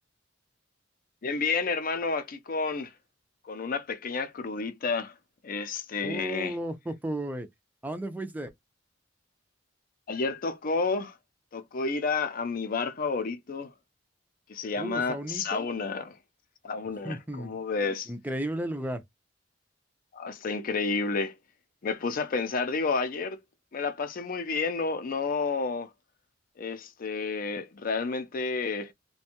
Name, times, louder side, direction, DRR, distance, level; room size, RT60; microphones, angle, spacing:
voice 1, 1.2-2.9 3.5-5.1 5.4-6.6 10.1-11.1 11.5-13.7 14.5-16.2 16.6-18.1 20.1-21.3 21.8-23.4 23.7-25.9 26.6-28.9, left 4 dB, 45° left, 0.5 m, -30 dB
voice 2, 6.0-7.5 7.8-8.5 14.8-15.8 17.0-17.6 18.1-19.0, right 1 dB, 10° right, 0.4 m, -34 dB
2.5 x 2.2 x 2.8 m
head